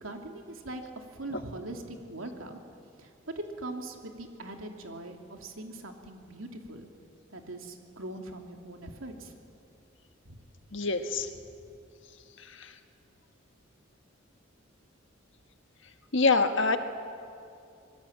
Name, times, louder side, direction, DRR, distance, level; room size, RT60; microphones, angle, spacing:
voice 1, 0.0-2.6 3.0-3.1 3.6-6.9 7.3-9.3 10.3-10.4, right 2 dB, 90° right, 3 dB, 2.9 m, -41 dB
voice 2, 10.7-11.3 16.1-16.8, left 3 dB, 65° left, 7 dB, 1.6 m, -24 dB
25.5 x 22.0 x 8.8 m, 2.5 s
head